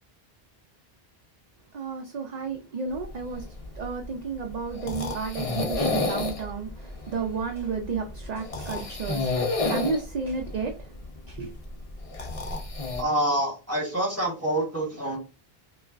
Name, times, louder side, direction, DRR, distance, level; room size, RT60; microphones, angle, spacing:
voice 1, 1.7-3.4 3.8-6.7 7.1-10.7 11.3-11.5, right 5 dB, 50° right, 0.6 m, -32 dB
sound 1, 2.9-13.0, left 3 dB, 35° left, 0.8 m, -32 dB
voice 2, 13.0-15.2, right 1 dB, 15° right, 1.5 m, -26 dB
5.1 x 2.3 x 2.4 m
omnidirectional pair, 1.1 m